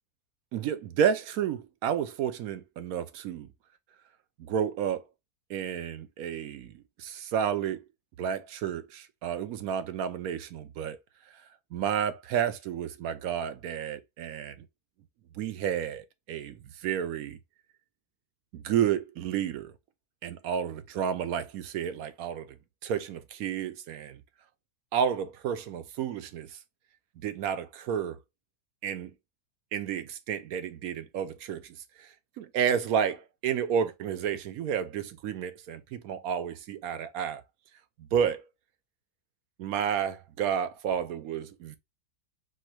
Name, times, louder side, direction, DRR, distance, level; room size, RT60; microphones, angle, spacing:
voice 1, 0.5-3.5 4.4-5.0 5.5-6.7 7.0-7.8 8.2-11.0 11.7-14.5 15.4-17.4 18.5-19.7 20.2-22.6 22.8-24.2 24.9-26.5 27.2-28.2 28.8-29.1 29.7-32.1 32.4-37.4 38.1-38.4 39.6-41.8, right 8 dB, 70° right, 1.0 m, -31 dB
4.4 x 2.2 x 4.3 m
omnidirectional pair, 1.7 m